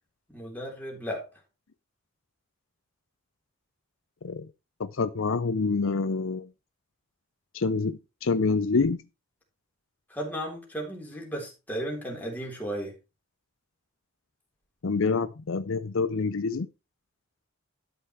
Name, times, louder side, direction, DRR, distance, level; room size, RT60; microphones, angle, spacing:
voice 1, 0.3-1.3 10.1-12.9, equal, 10° left, 3.7 m, -35 dB
voice 2, 4.8-6.5 7.5-9.0 14.8-16.7, left 4 dB, 65° left, 0.6 m, -27 dB
12.0 x 5.7 x 4.5 m
head